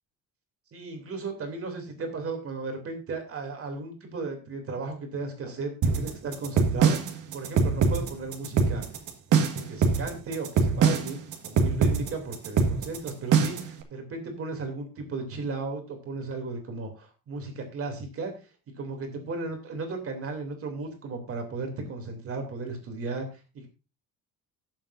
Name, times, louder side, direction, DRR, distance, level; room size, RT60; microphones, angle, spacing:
voice 1, 0.7-8.8 9.3-11.2 11.4-18.3 18.8-23.7, right 3 dB, 40° right, 4 dB, 3.0 m, -35 dB
sound 1, 5.8-13.7, right 5 dB, 60° right, 1.8 m, -23 dB
18.5 x 7.4 x 2.6 m, 0.30 s
cardioid pair, 150°, 35 cm